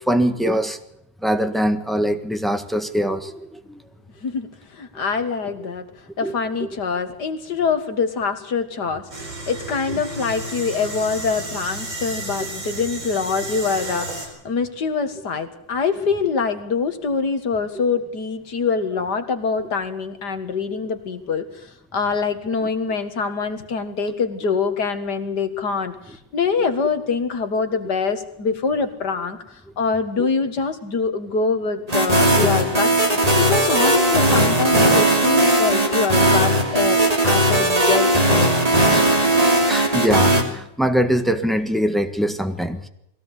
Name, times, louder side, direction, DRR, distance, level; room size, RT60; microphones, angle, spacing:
voice 1, 0.1-0.8 1.2-3.8 4.9-5.0 6.2-6.4 12.4-12.5 30.2-30.3 39.7-42.9, equal, ahead, 8 dB, 1.3 m, -22 dB
voice 2, 4.2-5.8 6.2-9.0 9.5-21.5 21.9-25.9 26.3-29.4 29.8-32.9 33.4-38.7, left 5 dB, 60° left, 8 dB, 2.3 m, -24 dB
sound 1, 9.1-14.3, right 2 dB, 75° right, 5.1 m, -32 dB
sound 2, 31.9-40.4, right 1 dB, 20° right, 3.0 m, -17 dB
21.5 x 17.0 x 8.2 m, 0.78 s
omnidirectional pair, 2.1 m